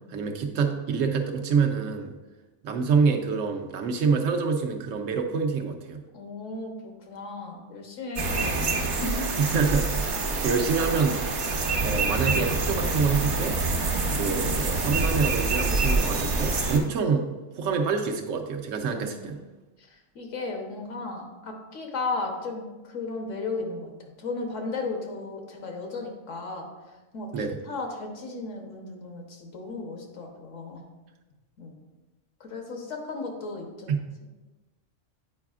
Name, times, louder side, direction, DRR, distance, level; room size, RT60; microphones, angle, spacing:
voice 1, 0.1-2.1 2.6-6.0 9.4-13.6 14.1-17.3 17.6-19.4 27.3-27.6 33.9-34.0, right 5 dB, 90° right, 4 dB, 1.1 m, -26 dB
voice 2, 6.1-9.3 13.8-14.0 18.9-19.3 19.8-23.9 24.2-26.7 27.1-30.8 31.6-31.8 32.4-33.9, left 3 dB, 75° left, 2 dB, 1.3 m, -35 dB
sound 1, 8.2-16.8, right 3 dB, 70° right, 1.2 m, -26 dB
8.2 x 4.8 x 2.4 m, 1.1 s
omnidirectional pair, 1.3 m